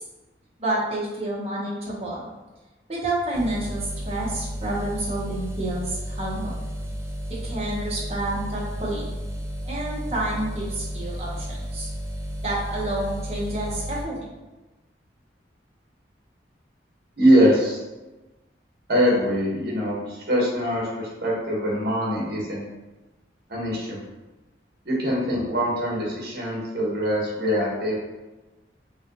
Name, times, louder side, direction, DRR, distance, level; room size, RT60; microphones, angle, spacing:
voice 1, 0.6-2.2 2.9-6.6 7.4-9.1 9.6-11.5 11.7-11.9 12.4-14.3, right 1 dB, 35° right, -5 dB, 1.1 m, -29 dB
sound 1, 3.3-14.0, equal, 15° right, 0.5 m, -33 dB
voice 2, 17.2-17.8 18.9-22.6 23.5-24.0 24.8-27.9, equal, 60° right, -4 dB, 1.4 m, -23 dB
5.4 x 2.4 x 3.0 m, 1.1 s
head